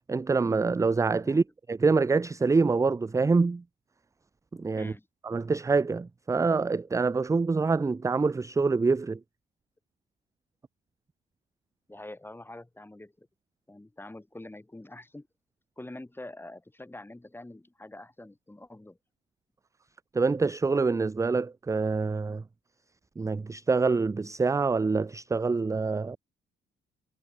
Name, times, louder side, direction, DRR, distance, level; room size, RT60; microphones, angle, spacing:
voice 1, 0.1-3.6 4.6-4.9 5.2-9.2 20.1-22.4 23.2-26.2, right 4 dB, 15° right, 0.5 m, -26 dB
voice 2, 11.9-13.3 13.7-15.3 15.8-19.0, left 1 dB, 10° left, 4.8 m, -45 dB
cardioid pair, 90°, 20 cm